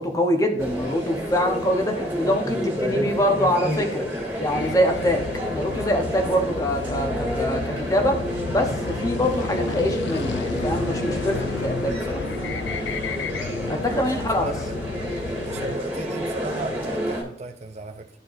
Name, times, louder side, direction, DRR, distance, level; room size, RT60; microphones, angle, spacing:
voice 1, 0.0-4.1 4.4-5.2 5.5-12.2 13.7-14.5, equal, 20° left, 3 dB, 0.9 m, -24 dB
sound 1, 0.6-17.2, equal, 10° right, 2.2 m, -29 dB
sound 2, 4.5-15.7, left 5 dB, 75° left, 0.4 m, -32 dB
voice 2, 14.0-14.6 15.5-18.1, right 3 dB, 40° right, 6 dB, 0.5 m, -35 dB
12.0 x 4.4 x 2.6 m, 0.75 s
head